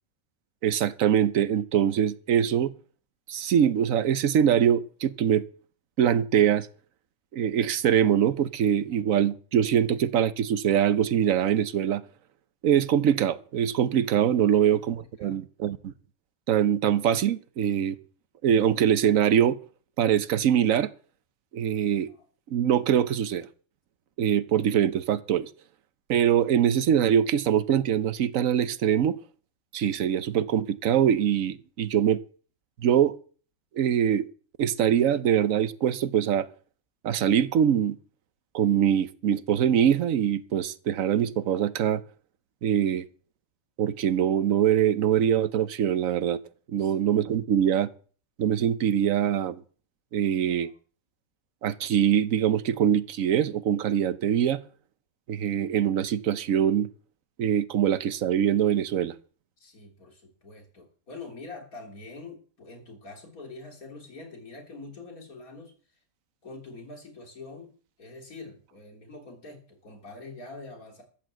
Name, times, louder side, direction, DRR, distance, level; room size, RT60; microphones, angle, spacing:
voice 1, 0.6-2.7 3.3-5.4 6.0-6.7 7.3-12.0 12.6-15.9 16.5-18.0 18.4-19.6 20.0-20.9 21.5-22.1 22.5-23.5 24.2-25.5 26.1-29.2 29.7-32.2 32.8-33.2 33.8-34.3 34.6-36.5 37.0-38.0 38.5-42.0 42.6-43.0 43.8-46.4 46.7-47.9 48.4-49.6 50.1-50.7 51.6-54.6 55.3-56.9 57.4-59.1, right 9 dB, 75° right, 1.2 m, -23 dB
voice 2, 14.5-15.4 22.1-22.3 46.8-46.9 50.5-50.7 59.6-65.7 66.4-67.7 68.0-71.0, left 3 dB, 85° left, 3.9 m, -45 dB
13.5 x 8.6 x 7.7 m
omnidirectional pair, 1.5 m